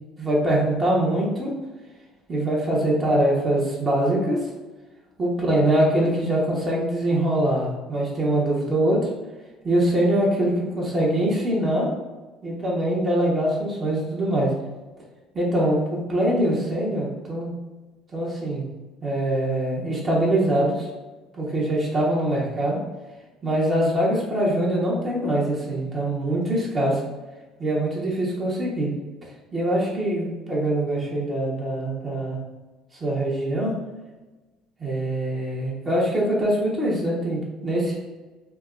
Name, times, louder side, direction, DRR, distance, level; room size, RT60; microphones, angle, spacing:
voice 1, 0.2-1.5 2.3-4.4 5.2-9.0 9.6-11.9 12.4-14.5 15.3-17.5 18.1-18.6 19.0-20.9 21.4-22.8 23.4-27.0 27.6-28.9 29.5-32.4 33.0-33.7 34.8-37.9, right 1 dB, 35° right, -4 dB, 0.8 m, -23 dB
3.3 x 2.1 x 2.3 m, 1.2 s
hypercardioid pair, 60°, 0 cm